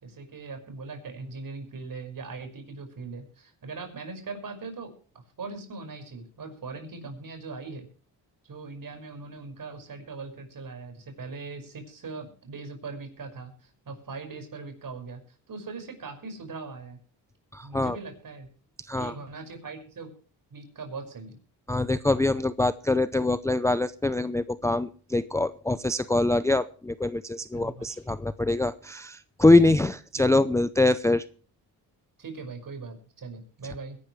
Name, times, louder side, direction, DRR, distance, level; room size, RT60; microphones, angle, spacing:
voice 1, 0.0-7.9 8.4-15.2 15.5-17.0 17.6-18.5 18.9-20.1 20.5-21.4 27.5-28.0 32.2-34.0, right 4 dB, 45° right, 6 dB, 5.6 m, -40 dB
voice 2, 17.5-18.0 18.9-19.1 21.7-31.2, left 2 dB, 5° left, 14 dB, 0.5 m, -24 dB
22.0 x 12.0 x 3.2 m, 0.42 s
cardioid pair, 85°, 44 cm